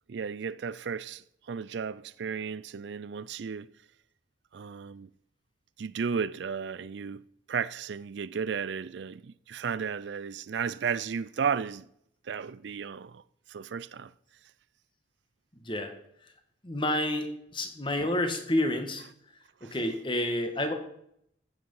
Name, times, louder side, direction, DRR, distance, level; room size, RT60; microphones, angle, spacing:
voice 1, 0.1-3.7 4.5-5.1 5.8-7.2 7.5-11.9 12.2-13.2 13.5-14.1 19.6-19.8, right 6 dB, 70° right, 0.4 m, -34 dB
voice 2, 16.6-19.0 19.6-20.7, left 1 dB, 25° left, 1.6 m, -29 dB
14.5 x 7.8 x 5.6 m
head